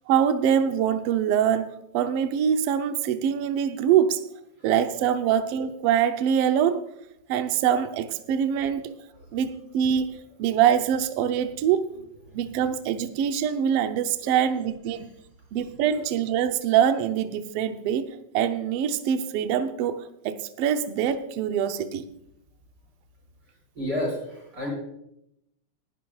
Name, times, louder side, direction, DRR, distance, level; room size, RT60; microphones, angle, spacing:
voice 1, 0.1-4.3 4.6-6.8 7.3-8.9 9.3-11.9 12.3-15.1 15.5-18.1 18.3-22.0, right 9 dB, 85° right, 1.3 m, -24 dB
voice 2, 23.8-24.7, left 1 dB, 30° right, 5.7 m, -30 dB
19.0 x 12.0 x 2.3 m
omnidirectional pair, 3.5 m